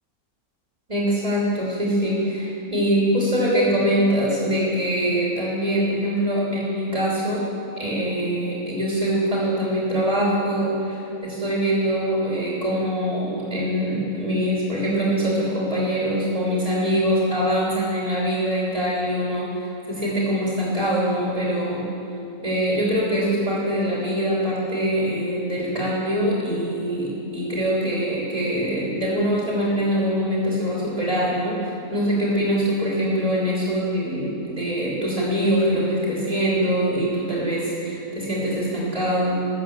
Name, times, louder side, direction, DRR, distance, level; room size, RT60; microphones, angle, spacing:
voice 1, 0.9-7.5 7.8-21.8 22.4-39.5, equal, 20° right, -6 dB, 3.1 m, -23 dB
13.5 x 8.4 x 7.1 m, 2.9 s
omnidirectional pair, 1.6 m